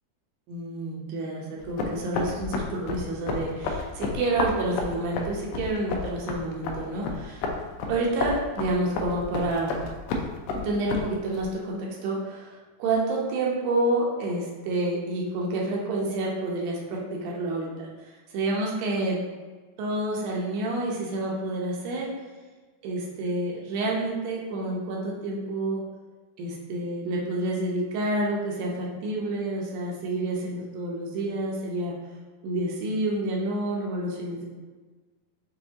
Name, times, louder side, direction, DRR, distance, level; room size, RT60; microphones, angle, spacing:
voice 1, 0.5-7.4 7.9-9.8 10.5-17.9 18.3-19.2 19.8-22.1 22.8-25.8 26.4-31.9 32.4-34.5, right 2 dB, 80° right, -3 dB, 2.5 m, -29 dB
sound 1, 1.6-11.5, left 3 dB, 85° left, 2.4 m, -32 dB
6.5 x 2.5 x 2.8 m, 1.3 s
omnidirectional pair, 4.1 m